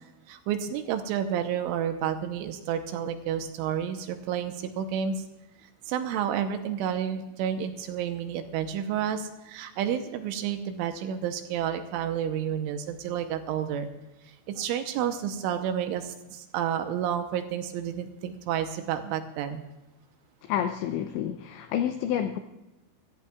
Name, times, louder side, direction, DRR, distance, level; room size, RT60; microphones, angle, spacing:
voice 1, 0.3-5.2 5.9-13.9 14.5-19.6, right 9 dB, 80° right, 7 dB, 3.1 m, -30 dB
voice 2, 20.4-22.4, left 10 dB, 85° left, 7 dB, 2.5 m, -29 dB
25.5 x 14.0 x 2.4 m, 1.0 s
omnidirectional pair, 5.9 m